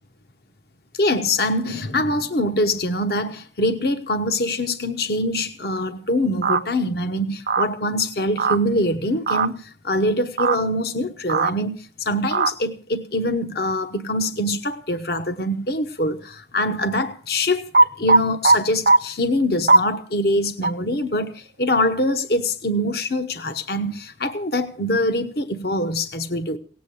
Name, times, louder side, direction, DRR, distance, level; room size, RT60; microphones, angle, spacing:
voice 1, 0.9-17.7 18.0-26.6, left 1 dB, 55° left, 1.1 m, -24 dB
sound 1, 6.4-6.6 7.5-7.7 8.4-8.6 9.3-9.5 10.4-10.6 11.3-11.5 12.3-12.5 17.7-18.6 18.9-19.0 19.7-19.8 20.6-20.7, right 3 dB, 50° right, 0.7 m, -16 dB
18.0 x 8.4 x 8.5 m
head